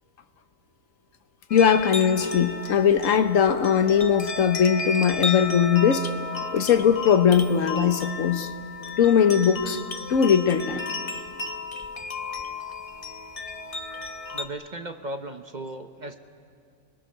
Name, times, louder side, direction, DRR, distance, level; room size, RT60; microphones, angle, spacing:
voice 1, 1.5-6.1 6.5-8.5 9.0-9.8 10.1-10.8, left 7 dB, 75° left, 9 dB, 1.4 m, -20 dB
sound 1, 1.5-14.5, left 3 dB, 30° left, 0.8 m, -34 dB
voice 2, 14.3-16.2, right 1 dB, 40° right, 7 dB, 0.9 m, -36 dB
29.5 x 20.5 x 6.5 m, 2.2 s
omnidirectional pair, 1.4 m